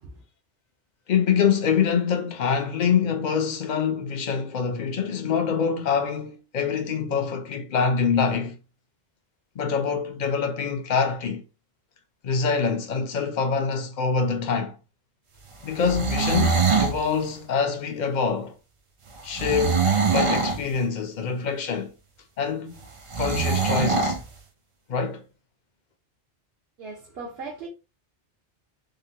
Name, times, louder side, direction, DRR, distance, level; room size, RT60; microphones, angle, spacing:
voice 1, 1.1-8.6 9.6-11.4 12.2-14.8 15.6-18.5 19.2-21.9 22.4-22.9 23.2-24.2 24.9-25.2, left 6 dB, 50° left, 0.6 m, -25 dB
sound 1, 15.7-17.0 19.3-20.6 23.1-24.2, right 5 dB, 40° right, 0.5 m, -23 dB
voice 2, 26.8-27.7, right 3 dB, 65° right, 1.0 m, -38 dB
3.6 x 2.1 x 2.7 m
omnidirectional pair, 1.1 m